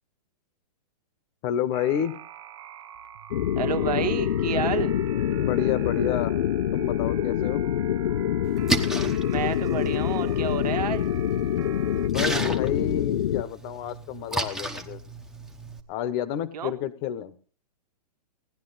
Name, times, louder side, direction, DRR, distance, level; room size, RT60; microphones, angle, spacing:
voice 1, 1.4-2.2 5.3-6.3 6.7-7.6 12.0-15.0 15.9-17.3, left 10 dB, 25° left, 15 dB, 1.0 m, -29 dB
sound 1, 1.7-12.1, right 11 dB, 50° right, 1.0 m, -44 dB
sound 2, 3.3-13.4, left 11 dB, 75° left, 0.6 m, -26 dB
voice 2, 3.6-4.9 9.3-11.1 16.5-16.7, right 8 dB, 75° right, 7 dB, 1.8 m, -30 dB
Splash splatter, 8.4-15.8, right 2 dB, ahead, 0.9 m, -34 dB
17.5 x 11.0 x 4.0 m, 0.42 s
hypercardioid pair, 165°, 20 cm